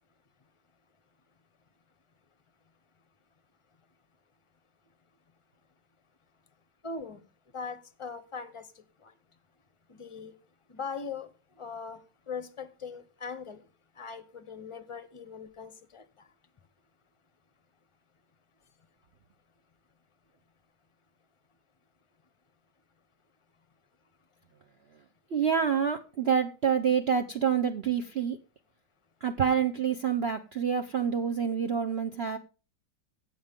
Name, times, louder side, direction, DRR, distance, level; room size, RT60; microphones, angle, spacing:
voice 1, 6.8-7.2 7.5-8.7 9.0-9.1 9.9-10.3 10.7-11.3 11.6-12.0 12.3-13.6 14.0-16.3, left 5 dB, 25° left, 0.7 m, -40 dB
voice 2, 25.3-28.4 29.2-32.4, right 7 dB, 50° right, 0.7 m, -27 dB
16.0 x 7.8 x 3.6 m
omnidirectional pair, 1.9 m